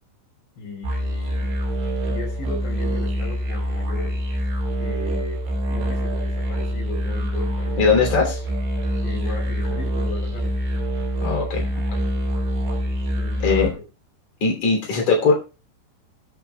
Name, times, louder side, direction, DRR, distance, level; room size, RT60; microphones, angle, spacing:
voice 1, 0.6-1.6 2.1-4.2 4.8-7.8 9.0-10.6 13.2-13.8 14.7-14.8, left 2 dB, 75° left, 1 dB, 5.9 m, -36 dB
sound 1, 0.8-13.7, equal, 85° right, 5.1 m, -25 dB
voice 2, 7.8-8.4 11.2-11.7 13.4-13.7 14.4-15.3, left 4 dB, 40° left, 1 dB, 3.7 m, -19 dB
22.0 x 8.1 x 2.3 m, 0.32 s
omnidirectional pair, 5.1 m